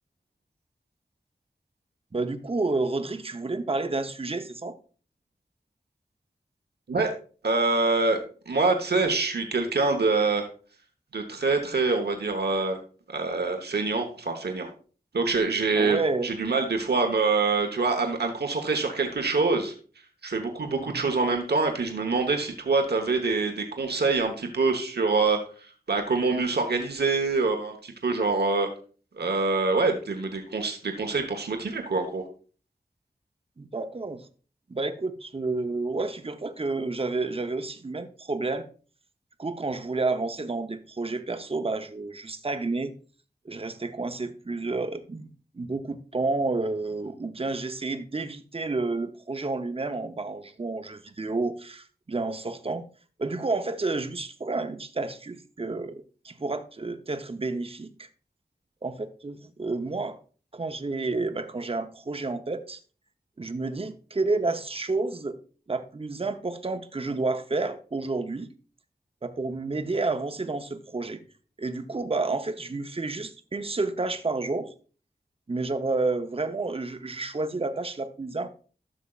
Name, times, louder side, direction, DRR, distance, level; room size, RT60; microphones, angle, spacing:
voice 1, 2.1-4.8 15.8-16.3 20.8-21.1 33.6-34.3 34.7-38.7 39.4-42.9 43.4-45.3 45.5-52.9 53.2-58.1 58.8-60.2 60.5-62.8 63.4-65.4 65.7-68.5 69.2-71.2 71.6-74.7 75.5-78.5, right 3 dB, 35° right, 0.7 m, -30 dB
voice 2, 7.4-8.2 8.5-10.5 11.1-12.8 13.1-14.7 15.1-19.7 20.2-28.7 29.2-32.2, right 3 dB, 75° right, 1.0 m, -25 dB
12.5 x 6.4 x 2.4 m
wide cardioid pair, 60°, 17 cm